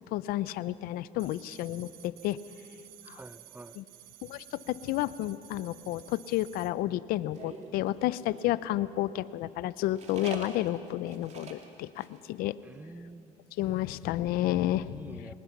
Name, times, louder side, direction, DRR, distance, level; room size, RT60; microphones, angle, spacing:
voice 1, 0.1-2.4 3.1-3.2 3.8-3.9 4.2-12.6 13.6-15.3, left 14 dB, 80° left, 17 dB, 0.6 m, -31 dB
sound 1, 1.2-6.7, right 15 dB, 80° right, 1.0 m, -53 dB
voice 2, 3.1-3.8 12.6-13.3 14.8-15.4, right 2 dB, 10° right, 14 dB, 0.8 m, -47 dB
sound 2, 7.3-8.7 9.9-11.7 12.0-12.2 12.4-12.5 12.8-13.1, right 4 dB, 45° right, 2.6 m, -44 dB
25.0 x 19.5 x 6.0 m, 2.6 s
supercardioid pair, 85°, 15 cm